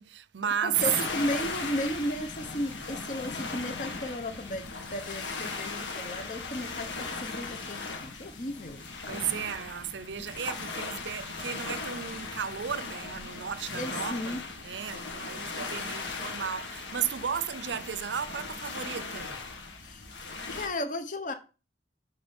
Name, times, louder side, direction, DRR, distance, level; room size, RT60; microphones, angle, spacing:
voice 1, 0.0-0.8 9.1-19.4, right 8 dB, 75° right, 0.5 m, -34 dB
voice 2, 0.6-8.8 13.7-14.4 19.8-20.0 20.5-21.3, left 1 dB, 45° left, 1.1 m, -34 dB
sound 1, 0.7-20.7, left 3 dB, 85° left, 1.9 m, -38 dB
10.5 x 4.2 x 5.3 m
head